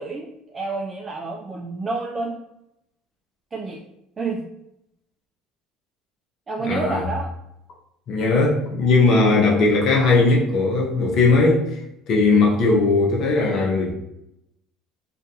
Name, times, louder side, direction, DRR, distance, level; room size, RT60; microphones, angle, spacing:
voice 1, 0.0-2.3 3.5-3.8 4.2-4.5 6.5-7.3, right 3 dB, 30° right, -2 dB, 0.4 m, -29 dB
voice 2, 6.6-7.0 8.1-11.6 12.1-13.9, left 3 dB, 60° left, -1 dB, 0.8 m, -18 dB
2.4 x 2.2 x 2.7 m, 0.82 s
supercardioid pair, 80°, 0 cm